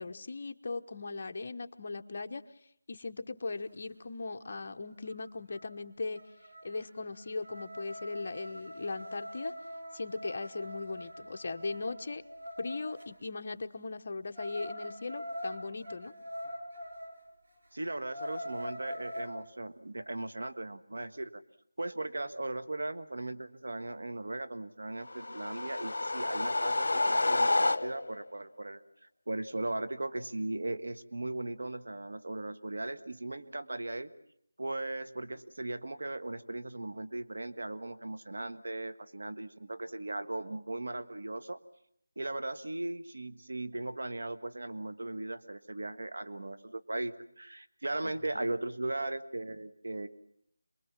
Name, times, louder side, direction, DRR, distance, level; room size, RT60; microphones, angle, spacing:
voice 1, 0.0-2.4 2.9-6.2 6.6-9.5 9.9-12.2 12.6-16.1 48.0-48.5, left 3 dB, 40° left, 6 dB, 1.0 m, -39 dB
sound 1, 5.1-5.2 5.5-5.8 6.1-13.1 14.3-17.2 17.6-17.7 18.0-19.3, equal, 60° right, 6.2 m, -43 dB
voice 2, 17.7-21.4 21.8-28.8 29.3-34.1 34.6-41.6 42.2-50.1, right 2 dB, 75° right, 10 dB, 1.6 m, -38 dB
sound 2, 25.1-28.3, left 2 dB, 70° left, 0.9 m, -29 dB
27.5 x 21.5 x 7.4 m, 0.70 s
figure-of-eight pair, 175°, 0 cm